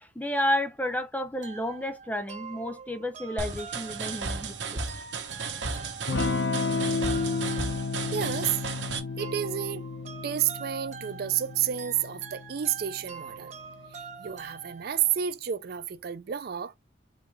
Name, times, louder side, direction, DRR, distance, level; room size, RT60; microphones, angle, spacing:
voice 1, 0.0-4.8, left 1 dB, 10° left, 0.6 m, -31 dB
sound 1, 1.4-15.2, right 5 dB, 35° right, 0.8 m, -45 dB
sound 2, 3.4-9.0, right 4 dB, 70° right, 0.9 m, -34 dB
Electric guitar / Strum, 6.1-14.4, left 4 dB, 65° left, 0.7 m, -33 dB
voice 2, 8.1-8.6 9.2-9.8 10.2-13.5 14.2-16.7, right 10 dB, 50° right, 0.4 m, -30 dB
3.9 x 2.8 x 4.7 m
head